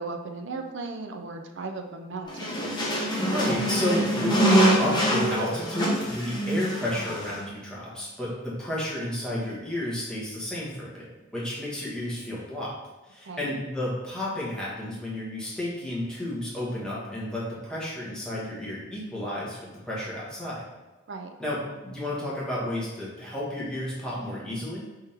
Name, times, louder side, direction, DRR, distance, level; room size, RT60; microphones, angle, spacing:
voice 1, 0.0-2.6 13.2-13.5 21.1-21.3, right 3 dB, 60° right, 5 dB, 0.5 m, -36 dB
sound 1, 2.3-7.4, right 1 dB, 20° left, 0.8 m, -25 dB
voice 2, 3.3-11.1 11.3-12.7 13.1-20.6 21.4-24.8, left 1 dB, 5° left, -7 dB, 1.3 m, -31 dB
3.6 x 3.5 x 4.3 m, 1.1 s
head